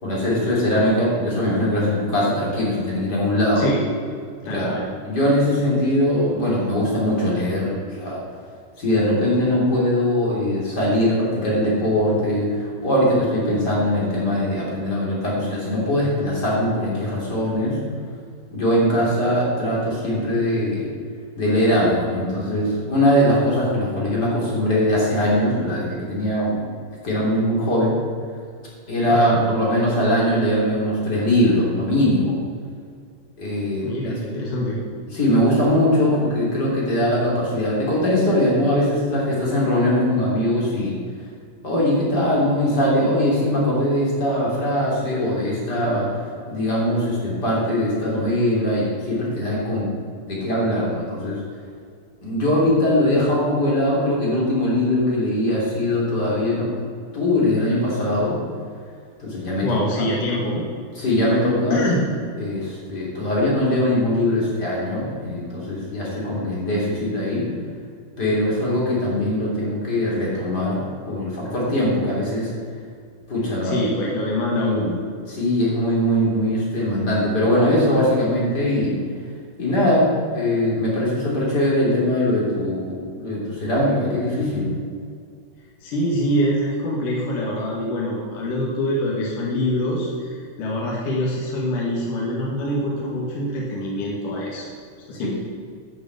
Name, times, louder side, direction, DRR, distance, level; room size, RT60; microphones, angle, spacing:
voice 1, 0.0-3.6 4.5-4.8 5.0-8.2 8.8-17.8 18.5-20.9 21.4-26.6 27.0-27.9 28.9-32.4 33.4-34.1 35.1-40.9 41.6-46.2 46.5-49.9 50.3-51.4 52.2-56.7 57.1-58.4 59.2-59.8 61.0-61.8 62.4-67.5 68.2-72.5 73.3-73.8 74.6-74.8 75.3-78.9 79.6-84.7 95.2-95.3, left 1 dB, 30° left, -5 dB, 3.6 m, -21 dB
voice 2, 4.4-4.9 29.1-29.4 33.8-34.8 59.6-60.6 61.7-62.0 73.6-75.0 85.8-94.7 95.1-95.3, left 1 dB, 70° left, -4 dB, 3.3 m, -24 dB
11.5 x 6.9 x 8.3 m, 2.1 s
omnidirectional pair, 3.9 m